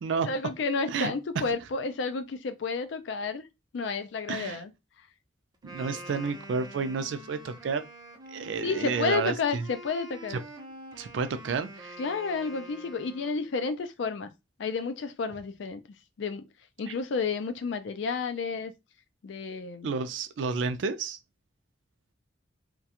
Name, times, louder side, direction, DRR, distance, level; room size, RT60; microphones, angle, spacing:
voice 1, 0.2-3.4 3.7-4.7 8.6-10.4 12.0-14.3 14.6-15.8 16.2-16.4 16.8-18.7 19.2-19.9, left 4 dB, 70° left, 0.4 m, -31 dB
voice 2, 4.3-4.6 5.6-7.8 8.3-9.6 11.0-12.0 19.8-21.2, right 5 dB, 70° right, 0.4 m, -31 dB
Wind instrument woodwind instrument, 5.5-13.6, right 1 dB, 20° right, 0.6 m, -46 dB
2.4 x 2.2 x 2.8 m
head